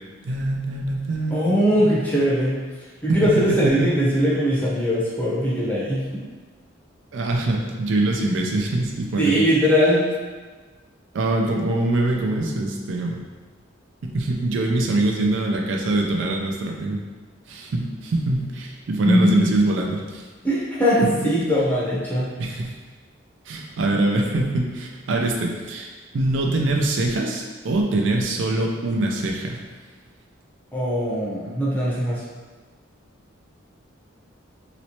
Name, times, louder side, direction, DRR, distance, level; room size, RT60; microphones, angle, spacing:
voice 1, 0.2-1.8 3.1-3.3 3.6-3.9 7.1-9.4 11.1-13.2 14.0-17.0 17.5-20.2 21.0-21.1 22.4-22.7 23.5-29.6, right 2 dB, 65° right, 0 dB, 0.4 m, -24 dB
voice 2, 1.3-2.6 3.0-6.2 9.2-10.0 19.0-19.5 20.4-22.3 30.7-32.2, equal, 10° left, -8 dB, 0.7 m, -20 dB
3.0 x 3.0 x 2.8 m, 1.4 s
head